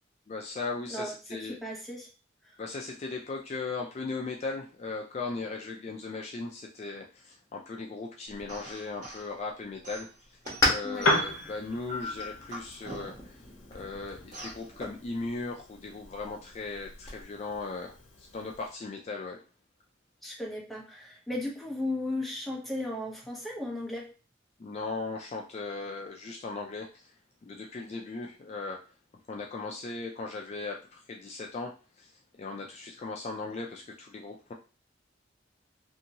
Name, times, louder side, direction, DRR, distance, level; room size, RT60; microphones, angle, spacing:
voice 1, 0.3-1.6 2.6-10.4 10.7-19.4 24.6-27.1 27.4-28.8 29.3-34.5, left 3 dB, 35° left, 1 dB, 0.3 m, -38 dB
voice 2, 0.9-2.1 10.8-11.1 20.2-24.1, left 1 dB, ahead, -2 dB, 0.7 m, -35 dB
sound 1, 8.3-17.2, left 2 dB, 20° left, 1.1 m, -37 dB
sound 2, 8.5-9.3 9.8-11.4 11.9-13.4 14.3-14.6, left 1 dB, 40° right, 0.9 m, -42 dB
Piano, 10.9-18.7, left 1 dB, 90° left, 0.6 m, -36 dB
2.7 x 2.6 x 2.7 m, 0.34 s
head